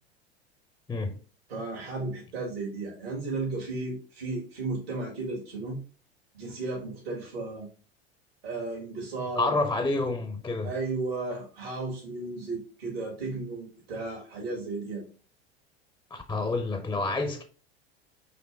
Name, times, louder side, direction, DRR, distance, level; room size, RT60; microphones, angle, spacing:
voice 1, 1.5-5.8 6.3-7.7 8.4-9.5 10.6-15.0, right 3 dB, 70° right, 1.7 m, -34 dB
voice 2, 9.3-10.7 16.1-17.4, left 3 dB, 10° left, 0.4 m, -28 dB
5.1 x 3.0 x 3.2 m
figure-of-eight pair, 85°, 31 cm